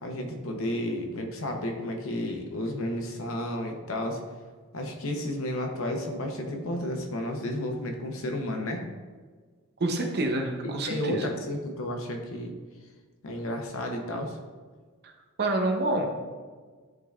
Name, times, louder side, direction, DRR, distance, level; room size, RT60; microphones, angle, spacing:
voice 1, 0.0-4.2 4.7-8.8 10.8-12.5 13.2-14.4, left 1 dB, 65° left, 3 dB, 0.8 m, -32 dB
voice 2, 9.8-11.3 15.0-15.1 15.4-16.1, right 2 dB, 50° right, 3 dB, 0.8 m, -27 dB
10.0 x 3.8 x 2.4 m, 1.5 s
head